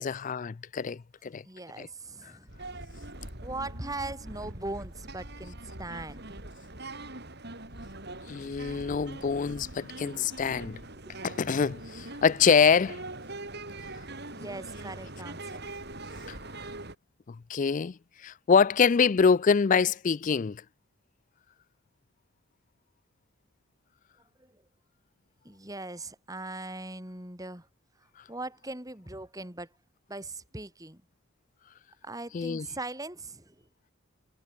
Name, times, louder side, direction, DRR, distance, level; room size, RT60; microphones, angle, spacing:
voice 1, 0.0-1.4 1.8-1.9 8.3-10.8 11.2-13.0 16.3-16.4 17.3-18.0 18.2-20.6 32.3-32.7, left 6 dB, 40° left, 0.4 m, -25 dB
voice 2, 1.4-2.5 3.4-6.4 11.1-11.2 14.3-15.7 24.4-24.6 25.4-27.7 28.3-29.7 30.1-31.0 32.0-33.7, right 2 dB, 15° right, 4.4 m, -40 dB
sound 1, 2.5-17.0, right 2 dB, 50° right, 7.2 m, -42 dB
head